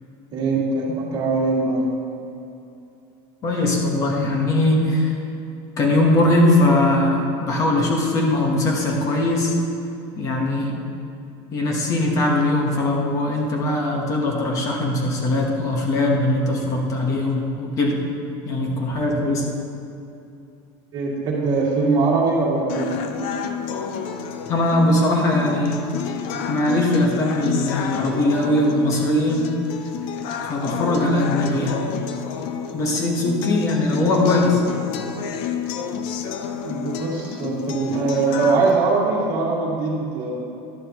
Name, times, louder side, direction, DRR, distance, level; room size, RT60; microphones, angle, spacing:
voice 1, 0.3-1.9 20.9-23.1 36.6-40.3, right 3 dB, 30° right, -7 dB, 2.4 m, -22 dB
voice 2, 3.4-5.1 5.8-9.5 10.2-10.8 11.5-18.0 18.4-19.5 24.5-25.8 26.5-29.5 30.4-31.8 32.7-34.6, left 1 dB, 25° left, 0 dB, 1.2 m, -20 dB
sound 1, 22.7-38.7, left 7 dB, 45° left, 0.5 m, -30 dB
12.0 x 10.5 x 3.0 m, 2.7 s
cardioid pair, 180°, 13 cm